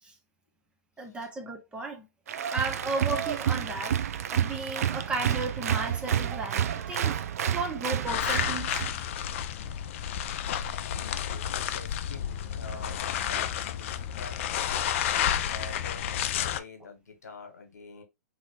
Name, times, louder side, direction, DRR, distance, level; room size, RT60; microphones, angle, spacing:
voice 1, 1.0-2.1 2.5-4.0 4.3-7.2 7.5-8.7, right 3 dB, 10° right, 0.6 m, -34 dB
Applause, 2.3-8.9, right 9 dB, 60° right, 0.4 m, -29 dB
sound 1, 8.1-16.6, left 10 dB, 50° left, 0.3 m, -31 dB
voice 2, 10.9-14.6 15.0-18.0, left 3 dB, 70° left, 1.1 m, -46 dB
2.9 x 2.7 x 3.0 m
figure-of-eight pair, 115°, 9 cm